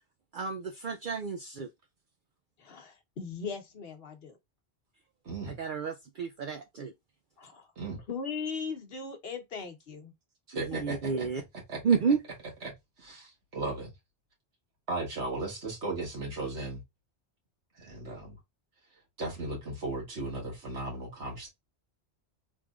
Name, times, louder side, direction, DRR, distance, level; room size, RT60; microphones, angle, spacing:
voice 1, 0.3-1.7 5.5-6.9 10.7-11.4 11.8-12.2, right 5 dB, 60° right, 0.6 m, -30 dB
voice 2, 2.6-4.4 7.4-7.7 8.1-10.1, left 5 dB, 60° left, 1.1 m, -38 dB
voice 3, 5.2-5.6 7.8-8.0 10.5-11.3 11.7-11.8 12.6-12.7 13.0-13.9 14.9-16.8 17.8-18.4 19.2-21.5, right 2 dB, 80° right, 1.8 m, -36 dB
3.6 x 3.2 x 2.3 m
omnidirectional pair, 1.1 m